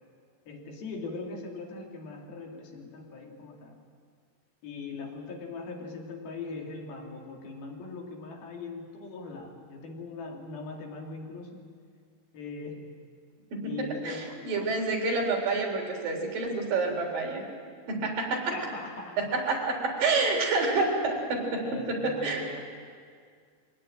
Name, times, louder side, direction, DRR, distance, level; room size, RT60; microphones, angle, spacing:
voice 1, 0.5-3.8 4.6-11.6 12.3-13.0 13.6-14.3 18.5-19.2 21.1-21.2 21.5-22.8, left 3 dB, 90° left, 0 dB, 4.6 m, -40 dB
voice 2, 13.5-14.2 14.5-17.4 17.9-18.5 19.3-22.5, right 3 dB, 70° right, 1 dB, 5.2 m, -28 dB
23.5 x 17.5 x 9.0 m, 2.1 s
omnidirectional pair, 4.2 m